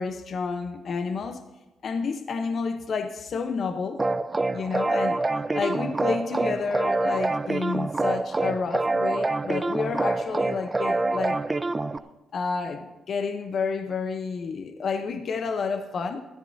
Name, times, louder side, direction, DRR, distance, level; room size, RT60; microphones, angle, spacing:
voice 1, 0.0-1.4 1.8-4.0 4.5-5.2 5.5-11.4 12.3-16.2, left 5 dB, 60° left, 0.8 m, -30 dB
sound 1, 4.0-12.0, right 2 dB, 25° right, 0.6 m, -26 dB
20.0 x 13.0 x 2.7 m
supercardioid pair, 55°, 0 cm